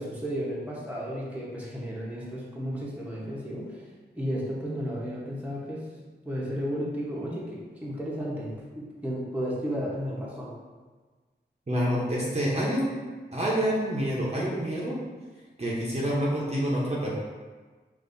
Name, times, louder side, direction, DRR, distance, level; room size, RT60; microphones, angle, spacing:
voice 1, 0.0-3.7 4.2-5.9 6.2-8.5 8.7-10.5, equal, 5° right, -6 dB, 0.9 m, -33 dB
voice 2, 11.7-12.9 13.3-15.0 15.6-17.1, equal, 35° right, -6 dB, 0.8 m, -27 dB
5.4 x 2.5 x 2.6 m, 1.4 s
wide cardioid pair, 80°, 19 cm